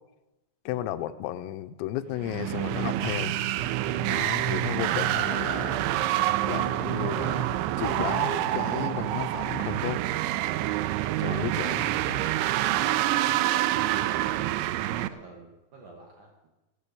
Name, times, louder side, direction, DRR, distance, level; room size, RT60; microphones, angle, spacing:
voice 1, 0.7-3.3 4.1-5.9 6.5-10.0 11.2-12.3 13.3-13.4, left 12 dB, 85° left, 10 dB, 3.3 m, -34 dB
sound 1, 2.2-15.1, right 14 dB, 85° right, 2.6 m, -27 dB
voice 2, 14.8-16.5, right 3 dB, 60° right, -1 dB, 2.2 m, -50 dB
16.0 x 6.7 x 8.4 m, 0.99 s
omnidirectional pair, 5.8 m